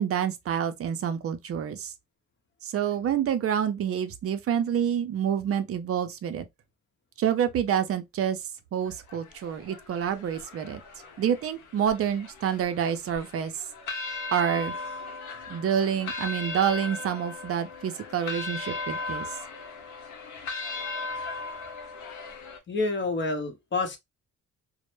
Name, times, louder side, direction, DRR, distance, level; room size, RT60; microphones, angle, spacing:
voice 1, 0.0-1.9 2.6-6.5 7.2-8.4 8.7-10.8 11.2-13.6 14.3-14.7 15.5-19.3, right 8 dB, 50° right, 0.5 m, -28 dB
sound 1, 8.9-22.6, left 3 dB, 80° left, 0.8 m, -37 dB
voice 2, 22.7-24.0, left 3 dB, 40° left, 0.8 m, -28 dB
2.1 x 2.0 x 3.0 m
cardioid pair, 90°, 30 cm